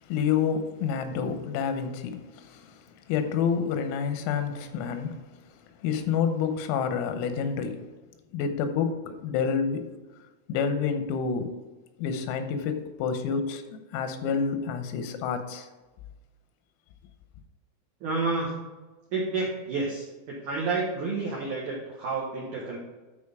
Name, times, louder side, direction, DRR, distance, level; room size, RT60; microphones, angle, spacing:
voice 1, 0.0-5.5 5.8-7.8 8.3-9.9 10.5-11.5 12.0-15.7, left 6 dB, 90° left, 8 dB, 3.6 m, -29 dB
voice 2, 18.0-18.7 19.1-22.8, right 3 dB, 80° right, -3 dB, 1.7 m, -30 dB
13.5 x 4.6 x 3.6 m, 1.2 s
omnidirectional pair, 5.9 m